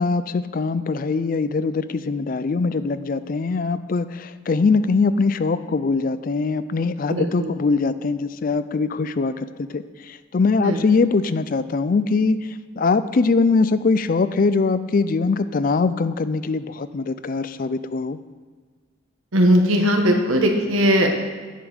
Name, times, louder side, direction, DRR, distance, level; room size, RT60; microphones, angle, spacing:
voice 1, 0.0-12.5 12.8-18.2, left 4 dB, 40° left, 14 dB, 0.4 m, -22 dB
voice 2, 7.1-7.5 10.6-10.8 19.3-21.1, equal, 85° right, 3 dB, 1.3 m, -19 dB
10.0 x 5.3 x 6.4 m, 1.5 s
head